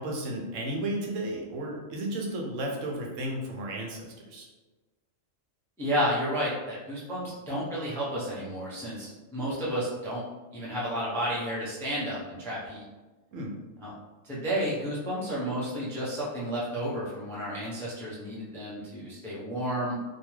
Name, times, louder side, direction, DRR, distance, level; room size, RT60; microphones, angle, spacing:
voice 1, 0.0-4.5 13.3-13.5, right 1 dB, 80° right, -1 dB, 1.0 m, -33 dB
voice 2, 5.8-10.2 10.5-12.8 13.8-13.9 14.2-20.0, equal, 5° left, -7 dB, 0.4 m, -31 dB
2.5 x 2.3 x 3.1 m, 1.2 s
omnidirectional pair, 1.3 m